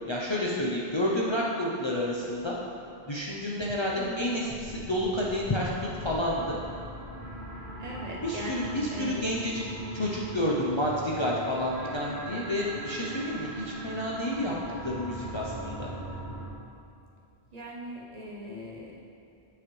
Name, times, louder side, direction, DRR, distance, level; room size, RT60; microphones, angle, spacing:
voice 1, 0.1-2.6 3.1-5.7 6.0-6.6 8.2-9.6 9.9-14.5 14.8-15.9, left 1 dB, 35° left, -4 dB, 0.5 m, -30 dB
voice 2, 3.9-4.4 7.8-9.3 17.5-19.0, equal, 45° right, -3 dB, 0.9 m, -39 dB
sound 1, 4.4-16.5, right 1 dB, 80° left, 1.5 m, -40 dB
8.8 x 4.9 x 3.2 m, 2.7 s
omnidirectional pair, 1.0 m